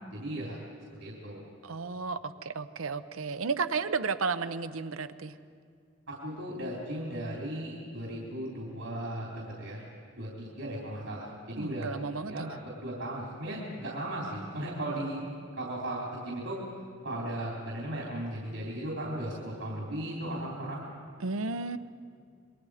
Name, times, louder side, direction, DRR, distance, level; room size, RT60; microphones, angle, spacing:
voice 1, 0.1-0.6 1.0-1.4 6.1-9.8 10.1-11.9 12.3-12.5 12.8-15.2 15.6-16.6 17.0-20.8, right 1 dB, 75° right, -3 dB, 3.6 m, -36 dB
voice 2, 1.6-5.3 11.6-12.5 21.2-21.8, right 4 dB, 90° right, 12 dB, 0.8 m, -33 dB
27.5 x 22.0 x 5.0 m, 2.2 s
head